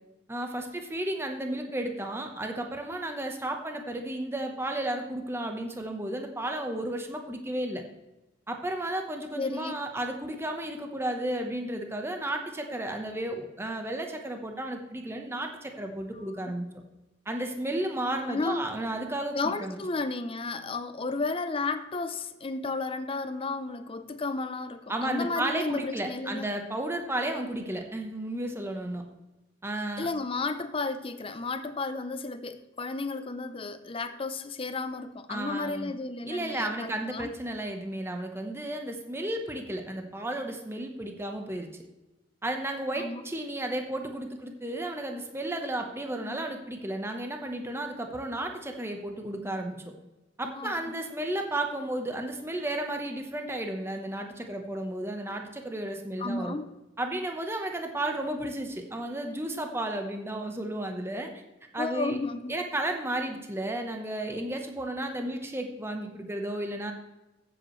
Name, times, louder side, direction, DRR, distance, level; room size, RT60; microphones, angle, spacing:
voice 1, 0.3-7.8 8.5-16.7 17.3-19.8 24.9-29.0 29.6-30.1 35.3-35.9 36.2-41.7 42.4-49.8 50.4-56.6 57.0-61.3 61.7-62.2 62.5-66.9, right 1 dB, 15° right, 4 dB, 1.0 m, -33 dB
voice 2, 9.4-9.7 18.3-18.7 19.3-26.5 30.0-37.3 43.0-43.2 46.2-46.3 50.4-50.7 56.2-56.7 61.8-62.7, left 3 dB, 30° left, 11 dB, 0.5 m, -33 dB
14.0 x 8.0 x 3.1 m, 1.0 s
head